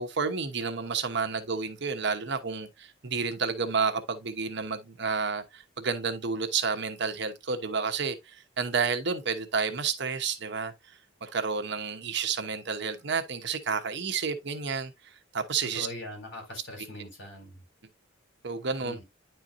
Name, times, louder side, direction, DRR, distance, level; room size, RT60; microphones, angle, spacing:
voice 1, 0.0-10.7 11.2-14.9 15.3-15.9 18.4-19.0, right 5 dB, 60° right, 1.0 m, -30 dB
voice 2, 15.7-17.6 18.8-19.0, left 1 dB, 60° left, 4.2 m, -41 dB
10.0 x 4.5 x 2.6 m
head